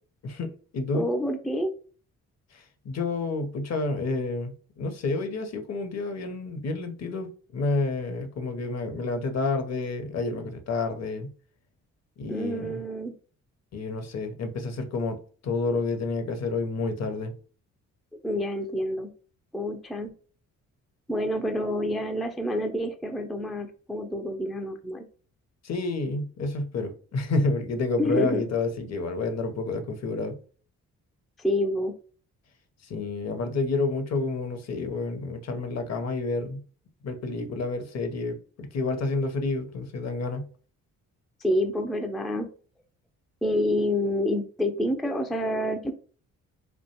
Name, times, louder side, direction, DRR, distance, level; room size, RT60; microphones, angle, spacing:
voice 1, 0.2-1.0 2.5-11.3 12.2-12.8 13.7-15.2 15.4-17.3 25.6-30.4 32.8-36.6 37.0-40.5, left 3 dB, 45° left, 0.7 m, -29 dB
voice 2, 0.9-1.7 12.3-13.1 18.2-19.1 19.5-20.1 21.1-25.0 28.0-28.4 31.4-31.9 41.4-42.5 43.4-45.9, left 1 dB, ahead, 0.3 m, -28 dB
2.4 x 2.2 x 2.7 m
hypercardioid pair, 45°, 37 cm